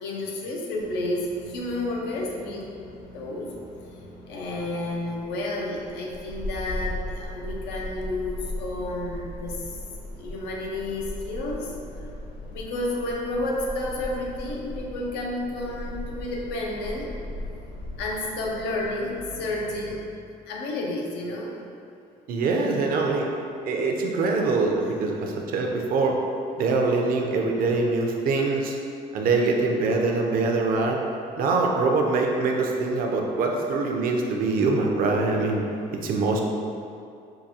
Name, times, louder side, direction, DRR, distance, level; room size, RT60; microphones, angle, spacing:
voice 1, 0.0-2.7 3.1-3.6 4.3-9.8 10.2-11.7 12.0-12.1 12.4-17.1 18.0-20.1 20.5-21.6 24.8-25.0, left 2 dB, 85° left, -1 dB, 0.6 m, -31 dB
sound 1, 0.7-19.9, left 1 dB, 60° left, 1.2 m, -38 dB
voice 2, 22.3-23.3 23.6-26.2 26.6-28.8 29.1-31.0 31.4-35.6 35.9-36.4, right 3 dB, 60° right, 1 dB, 0.5 m, -24 dB
4.6 x 2.3 x 2.7 m, 2.5 s
cardioid pair, 110°, 17 cm